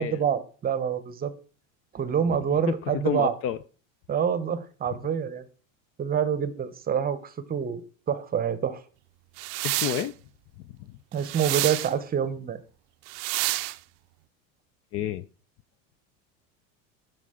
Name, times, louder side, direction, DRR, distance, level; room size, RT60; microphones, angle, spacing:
voice 1, 0.0-1.3 1.9-3.3 4.1-5.4 6.0-7.8 8.1-8.8 11.1-12.6, right 8 dB, 25° right, 0.8 m, -27 dB
voice 2, 3.0-3.6 9.6-10.1 14.9-15.2, left 11 dB, 35° left, 0.4 m, -29 dB
sound 1, 9.4-10.1 11.2-11.9 13.1-13.8, right 21 dB, 55° right, 0.5 m, -29 dB
12.5 x 4.9 x 3.6 m
supercardioid pair, 115°, 39 cm